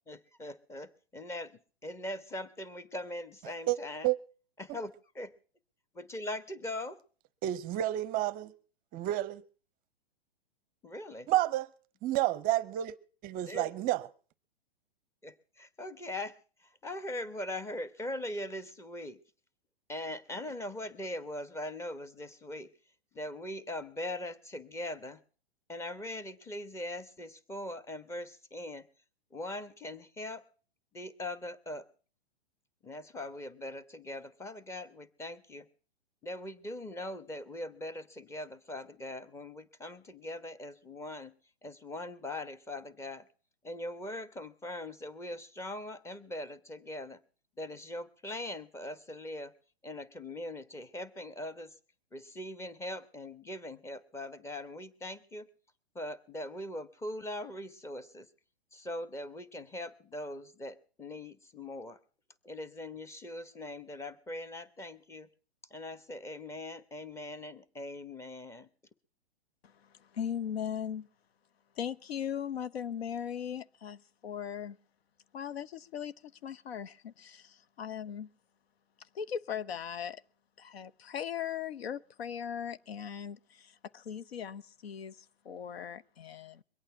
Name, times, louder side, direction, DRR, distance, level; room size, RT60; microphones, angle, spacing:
voice 1, 0.1-4.1 4.6-5.3 5.9-7.0 10.8-11.3 13.5-13.7 15.2-16.4 16.6-19.2 19.9-22.7 23.1-25.2 25.7-28.9 29.3-30.4 30.9-31.9 32.8-35.7 36.2-41.3 41.6-43.3 43.6-47.2 47.6-49.5 49.8-51.7 52.1-55.5 55.9-58.3 58.7-62.0 62.4-65.3 65.7-68.7, left 1 dB, 10° left, 1.0 m, -41 dB
voice 2, 7.4-8.5 8.9-9.4 11.3-11.7 12.0-13.0 13.2-14.1, right 15 dB, 30° right, 0.7 m, -30 dB
voice 3, 69.6-71.1 71.8-74.8 75.3-78.3 79.1-80.2 80.6-86.6, left 8 dB, 75° left, 0.9 m, -39 dB
22.5 x 8.8 x 5.5 m
hypercardioid pair, 125°, 31 cm